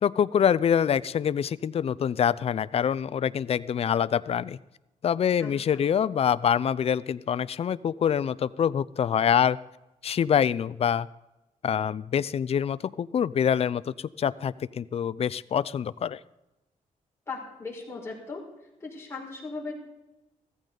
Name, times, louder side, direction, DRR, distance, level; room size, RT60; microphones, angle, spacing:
voice 1, 0.0-4.6 5.0-9.6 10.0-11.1 11.6-16.2, left 8 dB, 45° left, 17 dB, 0.4 m, -25 dB
voice 2, 5.4-5.8 17.3-18.4 18.8-19.7, left 4 dB, 20° left, -3 dB, 4.9 m, -38 dB
15.0 x 14.5 x 3.9 m, 0.96 s
cardioid pair, 120°, 14 cm